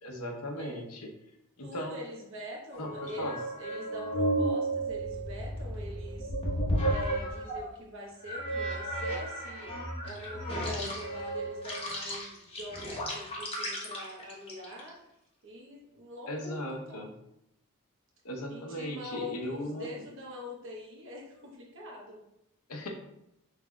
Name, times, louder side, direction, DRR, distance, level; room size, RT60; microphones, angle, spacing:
voice 1, 0.0-1.1 1.6-2.0 2.8-3.4 10.6-10.9 16.3-17.1 18.2-19.9 22.7-22.9, left 1 dB, 80° left, 2 dB, 0.8 m, -37 dB
voice 2, 1.6-6.3 6.8-9.7 10.0-15.0 15.4-16.6 16.9-17.0 18.5-22.2, left 1 dB, 60° right, -1 dB, 1.1 m, -44 dB
sound 1, 2.7-7.7 8.2-14.9, right 1 dB, 25° left, 1.0 m, -33 dB
5.8 x 3.4 x 2.3 m, 0.82 s
head